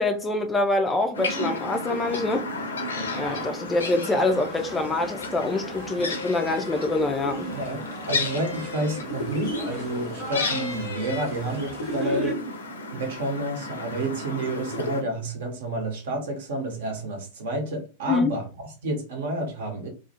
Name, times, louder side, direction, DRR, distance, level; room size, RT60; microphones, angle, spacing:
voice 1, 0.0-2.5 3.2-7.5 18.1-18.3, left 2 dB, 15° left, 0.4 m, -25 dB
sound 1, 1.1-15.0, left 2 dB, 70° left, 0.6 m, -32 dB
sound 2, 2.9-12.3, right 1 dB, 20° right, 0.9 m, -42 dB
voice 2, 7.5-12.4 12.9-19.9, right 1 dB, 60° right, 0.8 m, -30 dB
2.3 x 2.0 x 2.8 m
figure-of-eight pair, 90°, 0 cm